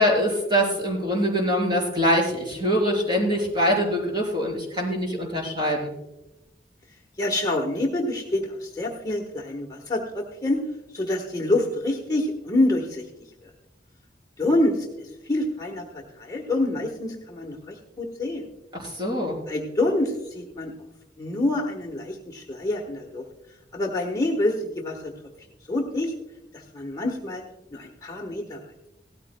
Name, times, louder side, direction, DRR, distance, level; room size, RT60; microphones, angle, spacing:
voice 1, 0.0-5.9 18.7-19.4, equal, 25° right, 0 dB, 3.5 m, -23 dB
voice 2, 7.2-10.6 10.9-13.1 13.4-13.5 14.4-15.9 16.1-18.5 19.5-20.7 21.2-23.3 23.7-25.1 25.7-26.1 26.5-27.4 27.7-28.6, left 1 dB, 20° left, 0 dB, 1.2 m, -26 dB
17.0 x 13.5 x 2.2 m, 0.94 s
head